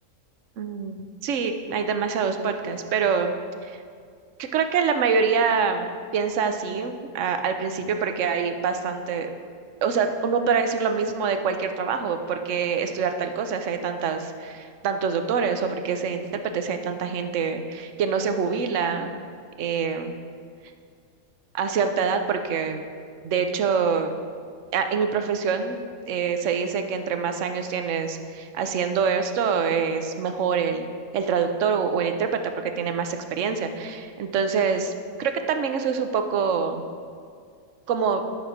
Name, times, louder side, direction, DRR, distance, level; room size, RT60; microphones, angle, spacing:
voice 1, 0.6-3.3 3.6-3.8 4.4-9.3 9.8-19.1 19.6-20.1 21.5-22.8 23.2-24.1 24.7-25.8 26.1-30.9 31.1-32.3 32.6-34.9 35.2-36.8 37.9-38.2, right 6 dB, 65° right, 7 dB, 1.0 m, -25 dB
10.5 x 6.1 x 5.0 m, 2.2 s
omnidirectional pair, 1.5 m